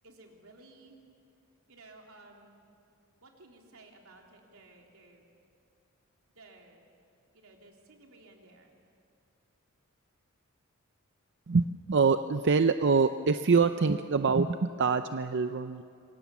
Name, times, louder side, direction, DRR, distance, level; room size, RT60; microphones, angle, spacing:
voice 1, 0.0-1.0 1.7-2.6 3.2-5.3 6.3-6.9 7.3-8.7, right 2 dB, 90° right, 1 dB, 3.6 m, -55 dB
voice 2, 11.5-15.8, right 4 dB, 55° right, 9 dB, 0.6 m, -25 dB
27.0 x 23.0 x 7.2 m, 2.4 s
head